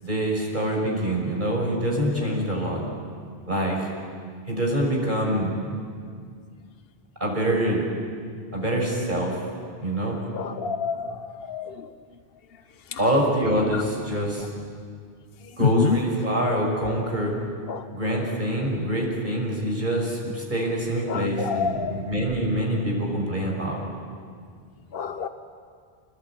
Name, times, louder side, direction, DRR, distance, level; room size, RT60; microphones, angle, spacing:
voice 1, 0.0-2.8 3.5-3.9 4.5-5.6 7.2-7.9 8.5-9.4 9.8-10.2 13.0-14.5 15.6-17.3 17.9-23.9, right 1 dB, 50° right, -1 dB, 6.1 m, -25 dB
voice 2, 10.3-11.1 11.5-11.7 13.7-13.8 15.6-16.0 17.7-17.8 21.1-22.0 24.9-25.3, left 6 dB, 65° left, 9 dB, 1.2 m, -26 dB
27.5 x 20.0 x 8.8 m, 2.1 s
omnidirectional pair, 1.1 m